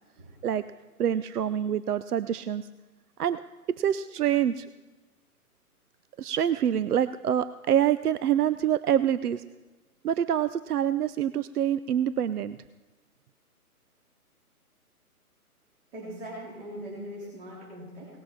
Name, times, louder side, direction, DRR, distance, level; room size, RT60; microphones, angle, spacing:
voice 1, 1.0-2.7 3.2-3.4 3.7-4.7 6.2-9.4 10.0-12.6, right 10 dB, 85° right, 14 dB, 0.6 m, -26 dB
voice 2, 15.9-18.2, equal, 40° right, -6 dB, 3.5 m, -41 dB
18.5 x 7.6 x 5.7 m, 1.2 s
hypercardioid pair, 150°, 45 cm